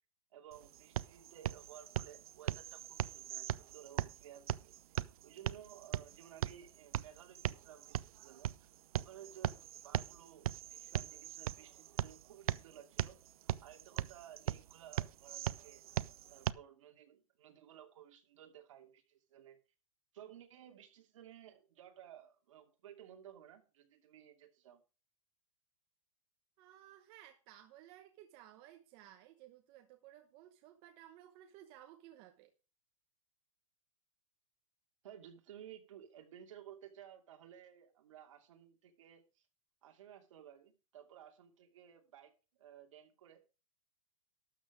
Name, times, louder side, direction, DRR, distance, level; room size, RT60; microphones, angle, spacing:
voice 1, 0.3-4.8 5.2-13.2 13.4-19.6 20.1-24.8 35.0-39.5 39.8-43.4, right 10 dB, 60° right, 4 dB, 2.6 m, -56 dB
sound 1, 0.5-16.5, right 12 dB, 85° right, 0.6 m, -40 dB
voice 2, 26.6-32.5, right 12 dB, 30° right, 5 dB, 1.0 m, -57 dB
12.5 x 7.1 x 5.0 m, 0.32 s
supercardioid pair, 170°, 18 cm